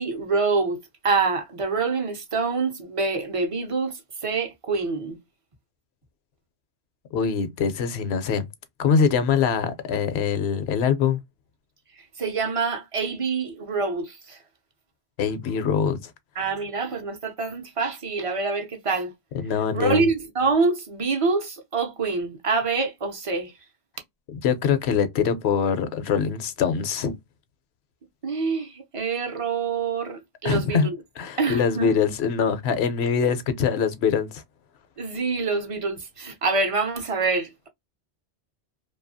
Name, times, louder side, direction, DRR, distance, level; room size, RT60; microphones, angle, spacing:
voice 1, 0.0-3.9 4.2-5.2 12.2-14.4 16.4-19.1 19.7-23.5 28.2-31.0 31.4-31.9 35.0-37.7, right 4 dB, 40° right, 0.5 m, -26 dB
voice 2, 7.1-8.5 8.8-11.2 15.2-16.1 19.3-20.0 24.3-27.1 30.4-30.9 31.2-34.4, left 6 dB, 75° left, 0.8 m, -23 dB
2.7 x 2.3 x 2.5 m
omnidirectional pair, 1.1 m